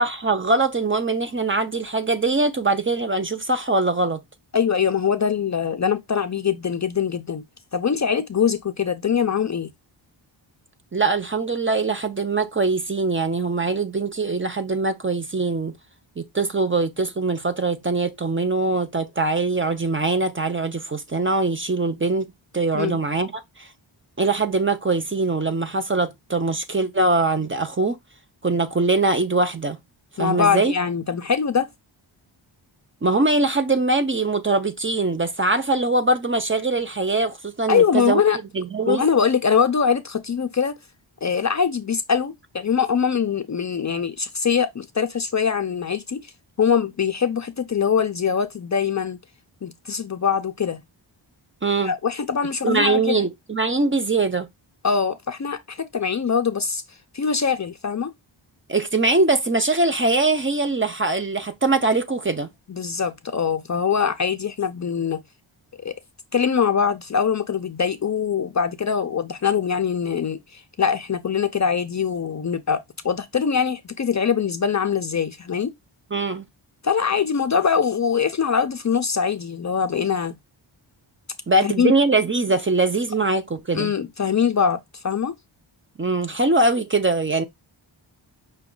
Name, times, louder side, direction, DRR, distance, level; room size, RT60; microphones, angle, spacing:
voice 1, 0.0-4.2 10.9-15.7 16.2-23.7 24.2-28.0 28.4-29.8 30.2-30.7 33.0-38.2 38.5-39.0 51.6-51.9 52.6-54.5 58.7-62.5 76.1-76.4 81.5-83.9 86.0-87.4, right 3 dB, 25° right, 0.5 m, -22 dB
voice 2, 4.5-7.4 7.7-9.7 22.7-23.0 30.2-31.7 37.7-38.4 38.9-40.8 41.2-46.3 46.6-49.2 49.6-50.8 51.8-53.2 54.8-56.8 57.1-58.1 62.7-65.2 65.8-65.9 66.3-75.7 76.8-80.3 81.6-81.9 83.7-84.8 85.0-85.4, left 6 dB, 40° left, 0.4 m, -23 dB
5.8 x 2.2 x 3.7 m
wide cardioid pair, 125°, 48 cm